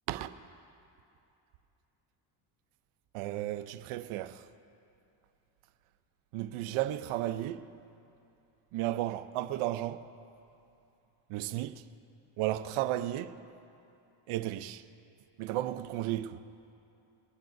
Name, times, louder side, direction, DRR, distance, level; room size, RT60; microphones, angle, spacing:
voice 1, 3.1-4.5 6.3-7.7 8.7-10.1 11.3-11.8 12.4-13.4 14.3-14.8 15.4-16.4, right 14 dB, 80° right, 0.7 m, -34 dB
23.5 x 18.5 x 2.6 m
supercardioid pair, 80°, 49 cm